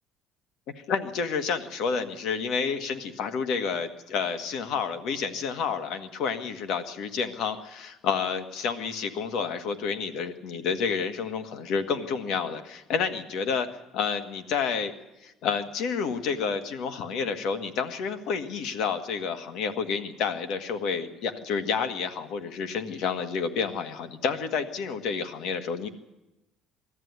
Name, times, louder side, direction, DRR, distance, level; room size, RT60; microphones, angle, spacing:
voice 1, 0.7-13.7 13.9-14.9 15.2-25.9, left 6 dB, 70° left, 9 dB, 1.7 m, -29 dB
20.0 x 14.0 x 9.6 m, 0.99 s
cardioid pair, 140°, 0 cm